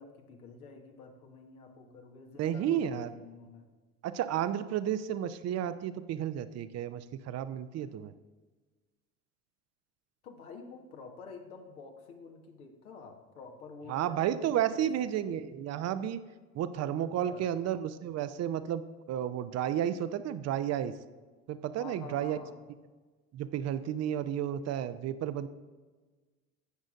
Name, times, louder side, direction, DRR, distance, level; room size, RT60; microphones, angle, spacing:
voice 1, 0.0-3.7 10.2-14.9 17.0-17.5 21.8-22.5, left 4 dB, 75° left, 3 dB, 1.3 m, -49 dB
voice 2, 2.4-3.1 4.0-8.1 13.9-16.2 16.5-18.8 19.1-20.9 21.5-22.4 23.3-25.5, right 10 dB, 35° right, 13 dB, 0.6 m, -32 dB
16.5 x 6.2 x 2.5 m, 1.3 s
figure-of-eight pair, 65°, 43 cm